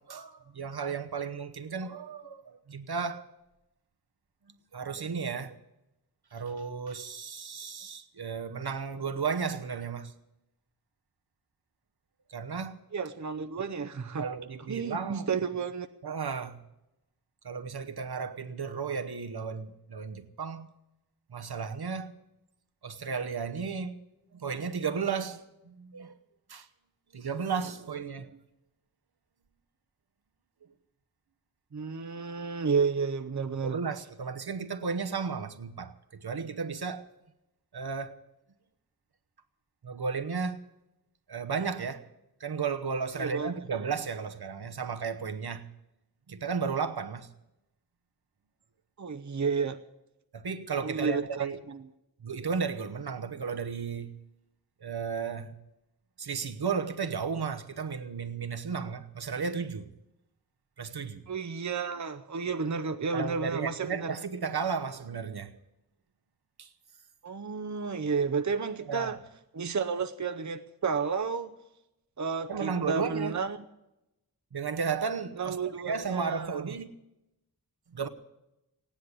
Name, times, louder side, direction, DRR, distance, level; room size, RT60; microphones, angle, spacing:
voice 1, 0.0-3.3 4.7-5.6 6.3-10.1 12.3-12.8 14.2-15.3 16.0-16.6 17.4-20.7 21.3-22.1 22.8-24.0 24.3-26.2 26.5-26.7 27.1-28.4 33.6-37.1 37.7-38.2 39.8-40.6 41.3-42.1 42.4-45.7 46.3-47.3 50.3-51.6 52.2-54.2 54.8-55.5 56.2-59.9 60.8-61.2 63.1-65.6 66.6-66.7 68.9-69.2 72.5-73.4 74.5-77.0 77.9-78.1, right 5 dB, 75° right, 1.0 m, -34 dB
voice 2, 12.9-14.3 14.7-15.9 31.7-33.8 43.2-43.5 49.0-49.8 50.8-51.8 61.3-64.1 67.2-69.2 69.5-71.5 72.2-73.6 75.4-76.6, right 5 dB, 50° right, 0.8 m, -31 dB
16.0 x 10.0 x 8.4 m
wide cardioid pair, 65°, 38 cm